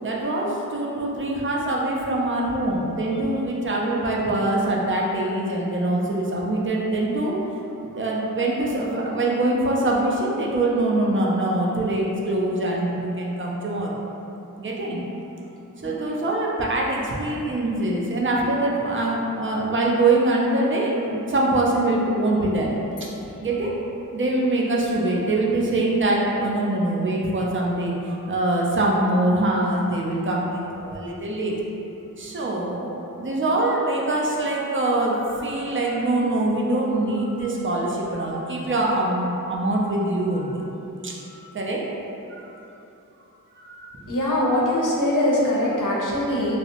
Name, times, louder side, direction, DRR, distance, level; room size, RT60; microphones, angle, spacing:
voice 1, 0.0-7.4 7.8-14.0 14.6-15.0 15.8-22.7 23.0-23.1 23.4-23.7 24.1-31.5 32.2-40.6 41.0-41.8 42.3-42.6 43.6-44.0, right 2 dB, 35° right, -3 dB, 0.4 m, -24 dB
voice 2, 44.1-46.6, left 1 dB, 60° left, -5 dB, 0.6 m, -22 dB
2.6 x 2.0 x 2.8 m, 2.9 s
wide cardioid pair, 45°, 35 cm